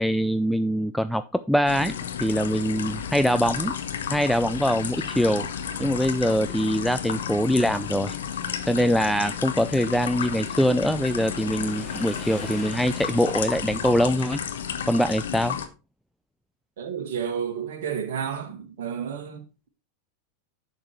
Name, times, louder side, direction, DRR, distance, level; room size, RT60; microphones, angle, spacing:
voice 1, 0.0-3.7 4.1-5.5 5.8-8.2 8.7-14.4 14.9-15.6, equal, ahead, 0.4 m, -23 dB
sound 1, 1.7-15.7, left 8 dB, 65° left, 1.1 m, -32 dB
Motorcycle / Engine, 7.1-14.1, left 1 dB, 20° left, 3.5 m, -44 dB
voice 2, 16.8-19.4, right 7 dB, 55° right, 1.8 m, -31 dB
11.0 x 7.3 x 3.1 m
figure-of-eight pair, 90°, 0 cm